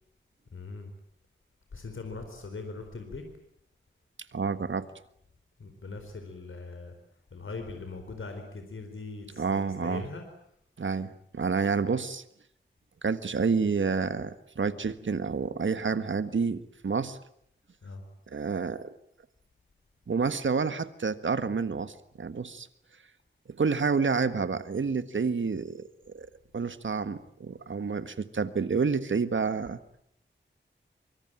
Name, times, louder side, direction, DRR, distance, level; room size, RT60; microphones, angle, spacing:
voice 1, 0.5-0.9 1.7-3.3 5.6-6.9 7.3-10.2 17.8-18.0, left 3 dB, 85° left, 5 dB, 4.3 m, -40 dB
voice 2, 4.3-4.8 9.4-10.0 10.8-12.2 13.0-17.2 18.3-18.9 20.1-22.7 23.6-26.3 26.5-29.8, right 5 dB, 75° right, 12 dB, 1.6 m, -29 dB
24.5 x 24.0 x 9.0 m, 0.71 s
wide cardioid pair, 80°, 20 cm